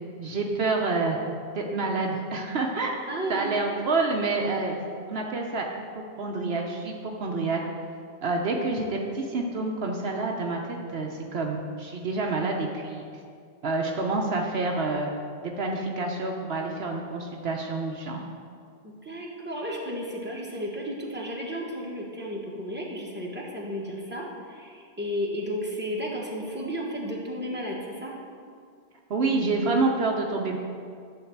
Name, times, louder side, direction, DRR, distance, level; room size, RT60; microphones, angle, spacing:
voice 1, 0.2-1.2 1.5-3.0 3.3-4.8 5.1-5.7 6.2-7.6 8.2-13.0 13.6-15.1 15.4-18.2 29.1-30.6, right 3 dB, 70° right, 1 dB, 1.0 m, -28 dB
voice 2, 3.1-3.5 18.8-28.1, equal, 10° right, -4 dB, 1.5 m, -33 dB
11.0 x 3.9 x 7.3 m, 2.2 s
omnidirectional pair, 1.1 m